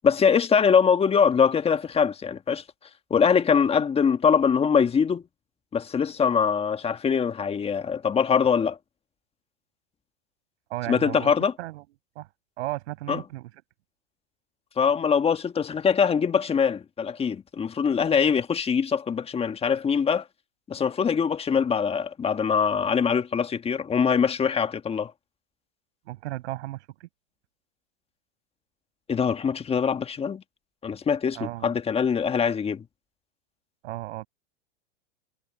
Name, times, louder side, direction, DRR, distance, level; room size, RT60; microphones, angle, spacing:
voice 1, 0.0-2.6 3.1-5.2 5.7-8.8 10.9-11.5 13.1-13.2 14.8-20.2 20.7-25.1 29.1-30.4 30.8-31.4 31.6-32.8, left 6 dB, 15° left, 1.4 m, -23 dB
voice 2, 10.7-11.3 11.6-11.8 12.1-12.3 12.6-13.5 26.1-27.1 31.3-31.7 33.8-34.3, right 17 dB, 70° right, 7.5 m, -34 dB
hypercardioid pair, 125°, 35 cm